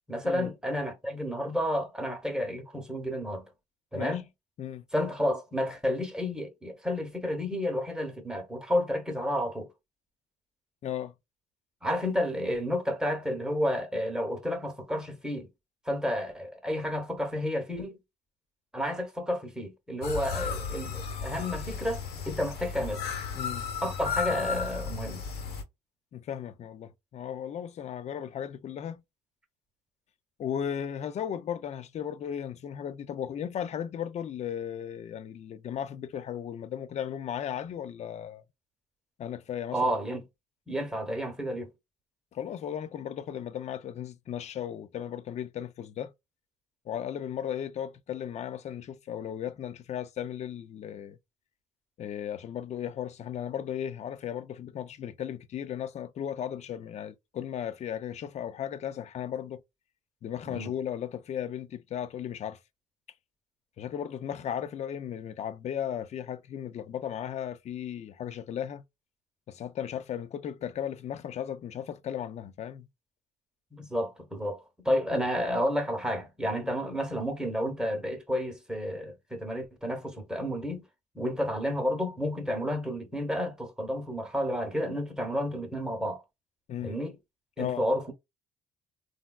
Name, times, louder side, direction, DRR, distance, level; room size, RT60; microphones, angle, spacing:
voice 1, 0.1-3.5 3.9-4.2 4.9-9.7 11.8-15.5 15.9-18.0 18.7-23.0 23.8-25.2 39.7-40.2 40.7-41.7 60.4-60.7 73.7-80.8 81.1-86.2 86.8-87.2 87.6-88.1, equal, 5° right, 0.9 m, -31 dB
voice 2, 10.8-11.1 23.4-23.7 26.1-29.0 30.4-38.4 39.2-40.0 42.3-46.1 46.9-51.2 52.0-59.6 60.2-62.6 63.8-68.8 69.5-72.9 86.7-87.0 87.6-87.8, left 9 dB, 40° left, 0.4 m, -36 dB
sound 1, 20.0-25.6, left 6 dB, 70° left, 1.0 m, -34 dB
3.3 x 2.3 x 2.3 m
cardioid pair, 110°, 17 cm